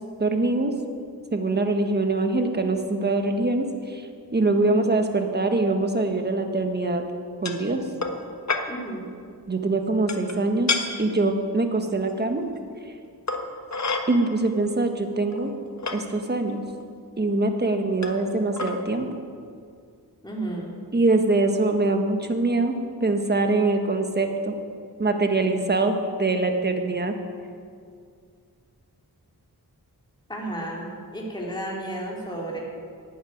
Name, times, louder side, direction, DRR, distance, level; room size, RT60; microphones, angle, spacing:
voice 1, 0.2-0.7 1.3-7.0 7.4-7.8 9.5-10.7 11.0-12.4 14.1-15.5 15.9-16.6 17.2-19.1 20.9-24.5 25.0-27.1, right 2 dB, 25° right, 5 dB, 1.4 m, -23 dB
sound 1, 7.4-7.6 8.0-8.2 8.5-8.7 10.1-10.4 10.7-10.8 12.1-12.2 13.3-14.1 14.9-15.0 15.3-16.0 16.8-16.9 18.0-18.3 18.5-18.7, left 4 dB, 45° left, 1.4 m, -28 dB
voice 2, 8.7-9.1 20.2-20.7 30.3-32.6, right 1 dB, 10° left, -3 dB, 3.2 m, -33 dB
12.0 x 10.0 x 9.3 m, 2.2 s
wide cardioid pair, 95°, 39 cm